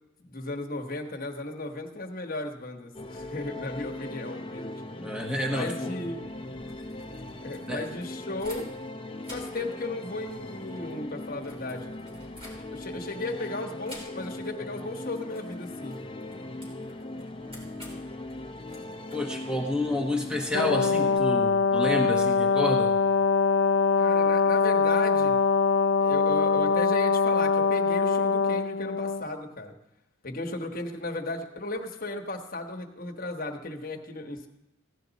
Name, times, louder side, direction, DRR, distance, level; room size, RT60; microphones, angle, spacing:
voice 1, 0.2-4.7 5.5-6.2 7.4-8.7 9.3-11.9 12.7-16.0 24.0-25.4 26.0-29.7 30.2-34.5, left 2 dB, 40° left, 2 dB, 1.2 m, -35 dB
sound 1, 2.9-21.2, left 2 dB, 25° left, 0.7 m, -39 dB
voice 2, 5.0-6.1 7.7-7.9 19.1-22.9, left 1 dB, 5° right, 0 dB, 1.1 m, -29 dB
sound 2, 6.5-8.9 9.2-13.0 13.8-14.5 14.8-15.0 15.3-19.9, left 1 dB, 25° right, 4.3 m, -51 dB
Brass instrument, 20.5-29.2, left 5 dB, 60° left, 0.6 m, -23 dB
16.5 x 11.0 x 4.1 m, 0.90 s
head